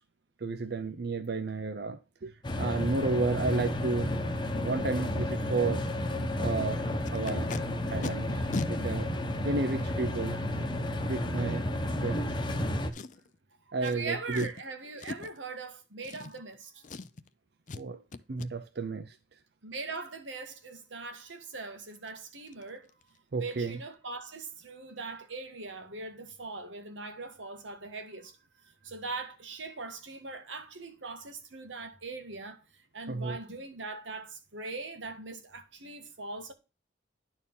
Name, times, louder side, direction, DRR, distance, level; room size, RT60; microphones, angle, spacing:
voice 1, 0.4-4.2 4.6-5.9 6.4-6.8 7.1-7.5 7.9-9.1 9.4-10.4 11.1-11.6 12.0-12.4 13.7-14.5 17.7-18.0 18.3-19.2 23.3-23.8 33.1-33.4, right 3 dB, 55° right, 0.5 m, -32 dB
sound 1, 2.4-12.9, left 1 dB, 25° left, 1.0 m, -32 dB
Packing tape duct tape, 7.0-7.6 8.0-8.1 8.5-8.7 9.5-9.6 12.9-13.3 13.8-14.0 14.3-14.6 15.0-15.4 16.0-16.6 16.8-17.3 17.7-17.8 18.1-18.5 21.5-21.6 21.9-22.1 22.5-22.6 22.9-23.2 23.4-23.5, left 3 dB, 40° left, 0.5 m, -38 dB
voice 2, 13.8-16.9 19.6-22.9 23.4-28.4 28.6-36.5, right 3 dB, 85° right, 1.6 m, -41 dB
11.0 x 4.4 x 5.4 m
head